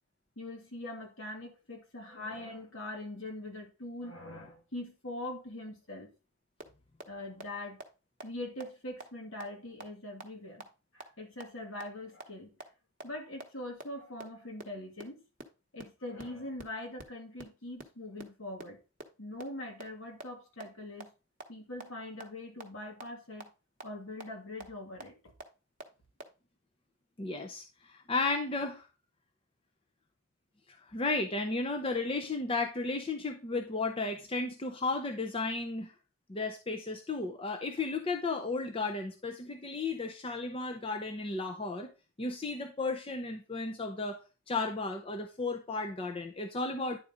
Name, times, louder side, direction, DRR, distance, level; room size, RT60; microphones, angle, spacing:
voice 1, 0.4-6.1 7.1-7.8 8.2-10.7 10.9-12.5 13.0-15.2 15.7-18.8 19.2-21.1 21.5-23.5 23.8-25.2, left 1 dB, 65° left, 2 dB, 2.0 m, -42 dB
sound 1, 6.6-6.7 7.0-7.1 7.4-7.5 7.8-7.9 8.2-8.3 8.6-8.7 9.0-9.1 9.4-9.5 9.8-9.9 10.2-10.3 10.6-10.7 11.0-11.1 11.4-11.5 11.8-11.9 12.2-12.3 12.6-12.7 13.0-13.1 13.4-13.5 13.8-13.9 14.2-14.3 14.6-14.7 15.0-15.1 15.4-15.5 15.8-15.9 16.2-16.3 16.6-16.7 17.0-17.1 17.4-17.5 17.8-17.9 18.2-18.3 18.6-18.7 19.0-19.1 19.4-19.5 19.8-19.9 20.2-20.3 20.6-20.7 21.0-21.1 21.4-21.5 21.8-21.9 22.2-22.3 22.6-22.7 23.0-23.1 23.4-23.5 23.8-23.9 24.2-24.3 24.6-24.7 25.0-25.1 25.4-25.5 25.8-25.9 26.2-26.3, right 2 dB, 40° right, 0.9 m, -42 dB
voice 2, 27.2-28.9 30.9-35.9 36.3-41.9 42.2-44.2 44.5-47.0, left 3 dB, 25° left, 5 dB, 0.6 m, -34 dB
9.9 x 4.2 x 3.6 m, 0.32 s
head